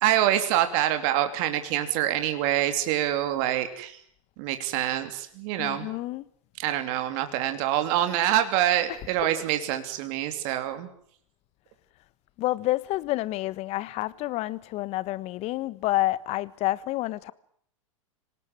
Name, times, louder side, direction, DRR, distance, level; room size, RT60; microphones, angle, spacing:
voice 1, 0.0-4.0 4.4-5.9 6.6-10.9, right 12 dB, 50° right, 3.0 m, -26 dB
voice 2, 5.6-6.2 8.9-9.0 12.4-17.3, left 17 dB, 40° left, 1.3 m, -29 dB
26.0 x 18.5 x 9.2 m
hypercardioid pair, 100°, 17 cm